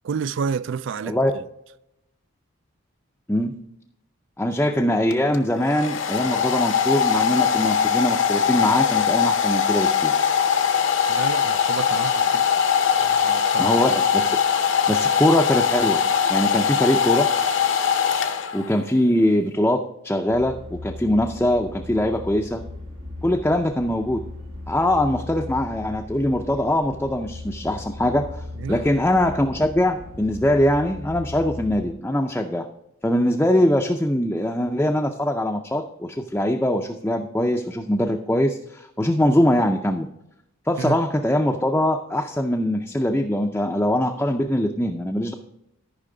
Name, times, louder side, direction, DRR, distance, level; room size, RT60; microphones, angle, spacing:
voice 1, 0.0-1.4 11.1-12.5 13.0-13.8 14.2-14.3 28.6-28.8 40.8-41.0, right 6 dB, 55° right, 0.3 m, -30 dB
voice 2, 4.4-10.1 13.6-14.4 14.9-16.0 16.3-17.5 18.5-22.6 23.2-24.2 24.7-32.7 33.0-40.1 40.7-45.3, left 1 dB, 10° left, 0.5 m, -22 dB
Domestic sounds home sounds, 5.1-18.8, left 7 dB, 55° left, 0.7 m, -21 dB
sound 1, 20.3-31.9, left 2 dB, 90° right, 2.3 m, -38 dB
13.5 x 5.6 x 3.9 m
head